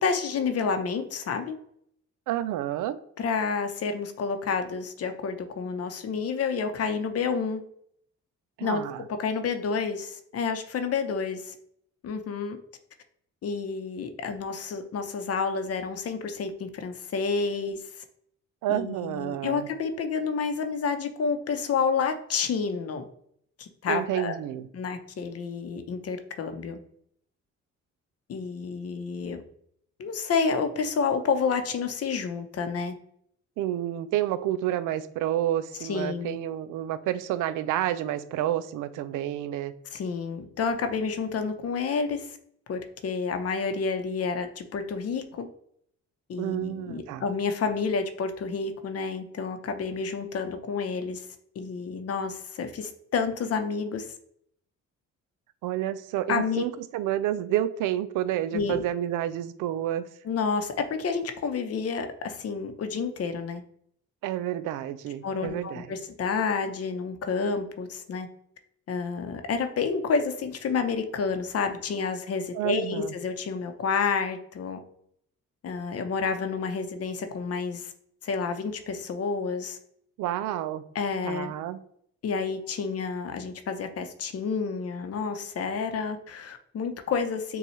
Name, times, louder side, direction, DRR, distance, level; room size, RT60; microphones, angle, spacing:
voice 1, 0.0-1.6 3.2-7.6 8.6-8.8 9.1-11.6 12.0-12.6 13.4-17.8 18.7-23.0 23.6-24.4 24.7-26.8 28.3-29.4 30.0-32.9 35.8-36.4 39.9-42.4 42.7-45.5 46.3-51.3 51.6-54.1 56.3-56.6 58.5-58.8 60.2-63.6 65.2-68.3 68.9-74.8 75.6-77.9 78.2-79.8 80.9-81.5 82.2-87.6, left 5 dB, 50° left, 7 dB, 0.7 m, -29 dB
voice 2, 2.3-3.0 8.6-9.0 18.6-19.7 23.9-24.7 33.6-39.7 46.4-47.2 55.6-60.0 64.2-65.9 72.5-73.1 80.2-80.8 81.2-81.8, right 12 dB, 85° right, 13 dB, 0.5 m, -29 dB
6.9 x 2.3 x 3.1 m, 0.68 s
cardioid pair, 90°, 30 cm